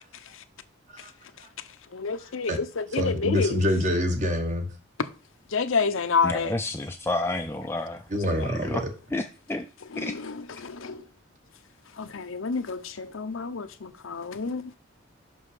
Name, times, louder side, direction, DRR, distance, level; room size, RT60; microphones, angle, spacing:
voice 1, 1.9-3.6 5.5-6.5 8.4-8.5 9.9-11.0 12.0-14.7, left 5 dB, 85° left, 0.7 m, -29 dB
voice 2, 3.0-4.7 8.1-8.9, left 1 dB, 35° right, 1.2 m, -25 dB
voice 3, 6.2-8.0 8.4-8.8 9.1-9.2 9.5-9.6 10.0-10.1, left 2 dB, 10° left, 0.4 m, -29 dB
6.0 x 5.4 x 4.9 m
head